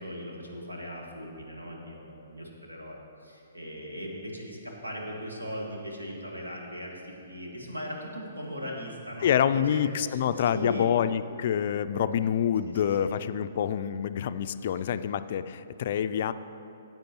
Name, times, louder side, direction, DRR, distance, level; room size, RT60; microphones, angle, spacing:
voice 1, 0.0-10.2 10.5-10.9 12.7-13.1, equal, 85° right, -1 dB, 1.8 m, -39 dB
voice 2, 9.2-16.3, left 9 dB, 50° left, 12 dB, 0.3 m, -27 dB
14.5 x 8.8 x 3.0 m, 2.7 s
figure-of-eight pair, 125°, 0 cm